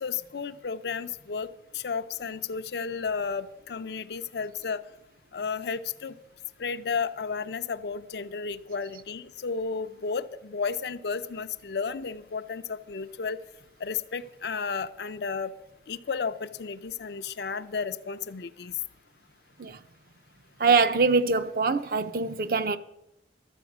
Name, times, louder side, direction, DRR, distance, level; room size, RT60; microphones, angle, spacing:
voice 1, 0.0-1.5 1.7-4.8 5.3-6.1 6.6-13.4 13.8-15.5 15.9-18.7, left 5 dB, 65° left, 0.5 m, -33 dB
voice 2, 20.6-22.8, right 4 dB, 50° right, 0.5 m, -23 dB
12.5 x 7.9 x 6.0 m
head